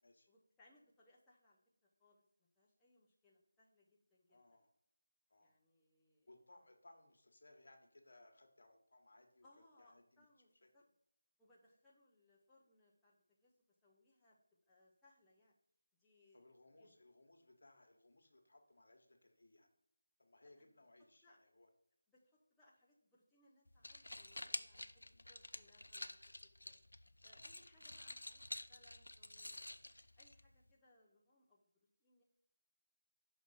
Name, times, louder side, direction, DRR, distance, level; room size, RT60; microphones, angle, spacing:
voice 1, 0.3-4.4 5.4-6.3 9.4-10.8 11.4-13.5 13.8-14.4 14.7-15.5 16.0-16.9 20.6-20.7 21.2-21.4 22.1-25.0 25.3-26.8 27.2-28.4 28.7-29.8 30.2-32.2, left 2 dB, 5° left, -7 dB, 0.7 m, -71 dB
voice 2, 4.3-4.7 5.3-5.5 6.3-10.3 16.3-19.7 20.2-21.7 25.1-25.3, left 2 dB, 65° left, 3 dB, 1.3 m, -65 dB
sound 1, 23.7-30.7, left 1 dB, 90° left, 0.4 m, -50 dB
5.9 x 2.9 x 5.6 m, 0.74 s
figure-of-eight pair, 165°, 0 cm